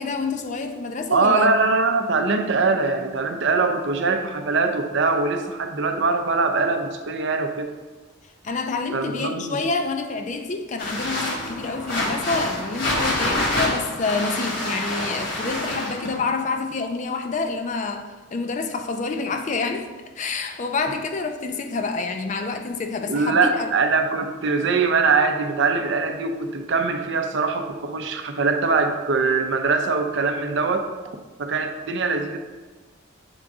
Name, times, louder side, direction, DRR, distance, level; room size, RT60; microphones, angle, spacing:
voice 1, 0.0-1.5 8.4-19.9 20.2-23.7, left 4 dB, 35° left, 0.4 m, -27 dB
voice 2, 1.1-7.7 8.9-9.6 23.1-30.9 31.4-32.4, right 4 dB, 60° right, 0.5 m, -22 dB
sound 1, 10.8-16.2, left 1 dB, 65° left, 1.3 m, -27 dB
7.1 x 3.7 x 3.5 m
head